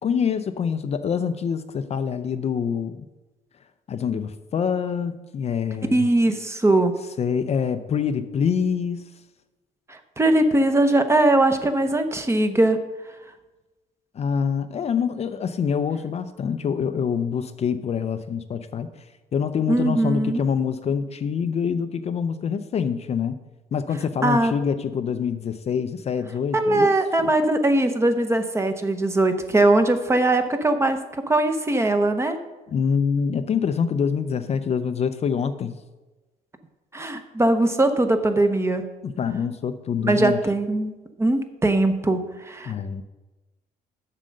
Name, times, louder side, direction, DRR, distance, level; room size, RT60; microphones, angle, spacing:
voice 1, 0.0-3.1 3.9-6.1 7.2-9.1 14.1-19.0 19.3-23.4 23.7-26.9 27.2-27.3 32.7-35.8 39.0-40.4 42.7-43.0, left 7 dB, 40° left, 10 dB, 0.5 m, -25 dB
voice 2, 5.9-7.0 9.9-12.8 19.7-20.4 24.2-24.5 26.5-31.0 31.3-32.4 36.9-38.9 40.0-40.9 41.2-42.7, right 2 dB, 15° right, 7 dB, 0.9 m, -20 dB
7.5 x 6.6 x 6.4 m, 1.1 s
cardioid pair, 110°, 17 cm